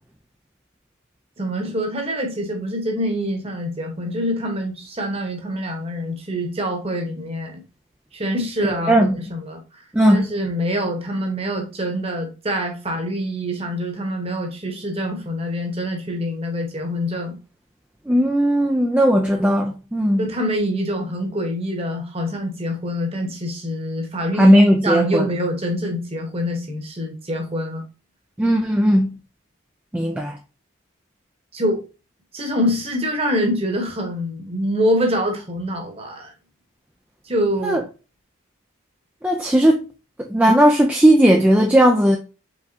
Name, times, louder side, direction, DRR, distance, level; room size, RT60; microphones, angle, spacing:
voice 1, 1.4-7.6 8.1-9.8 10.1-17.4 20.2-24.6 24.8-27.8 31.5-31.8 32.3-36.3 37.2-37.8, equal, 25° right, 1.1 m, -25 dB
voice 2, 8.6-9.2 9.9-10.3 18.1-20.3 24.4-25.3 28.4-29.2 29.9-30.4 37.6-37.8 39.2-39.8 40.3-42.2, equal, 5° right, 0.3 m, -16 dB
4.7 x 3.5 x 2.7 m
head